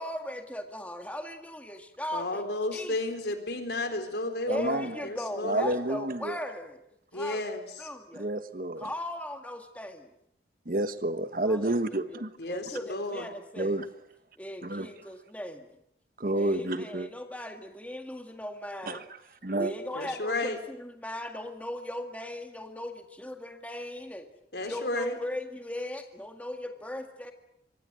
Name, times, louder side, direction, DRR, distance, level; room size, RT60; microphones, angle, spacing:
voice 1, 0.0-2.4 2.7-3.0 4.5-6.8 7.1-8.3 8.8-10.1 11.4-13.8 14.4-15.7 16.3-19.0 19.5-24.3 24.6-27.3, left 1 dB, 10° left, 5 dB, 1.9 m, -38 dB
voice 2, 2.1-5.7 7.1-7.9 12.4-13.3 19.9-20.6 24.5-25.2, left 2 dB, 65° left, 7 dB, 4.0 m, -33 dB
voice 3, 4.5-4.9 5.4-6.4 8.2-8.9 10.7-12.3 13.6-13.8 14.6-14.9 16.2-17.1 18.9-19.0 19.4-19.7, right 1 dB, 50° right, 10 dB, 1.3 m, -29 dB
26.0 x 24.0 x 7.7 m, 0.78 s
head